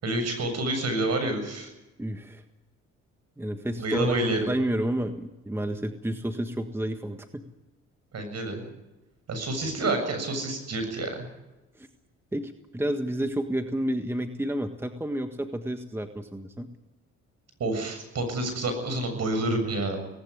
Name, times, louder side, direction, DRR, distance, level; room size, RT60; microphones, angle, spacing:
voice 1, 0.0-1.7 3.8-4.4 8.1-8.6 9.3-11.3 17.6-20.0, right 2 dB, 55° right, 7 dB, 7.5 m, -28 dB
voice 2, 2.0-2.4 3.4-4.2 4.5-7.4 11.7-11.9 12.3-16.7, right 1 dB, 10° right, 7 dB, 1.6 m, -30 dB
19.0 x 18.0 x 9.8 m, 1.0 s
cardioid pair, 90°, 30 cm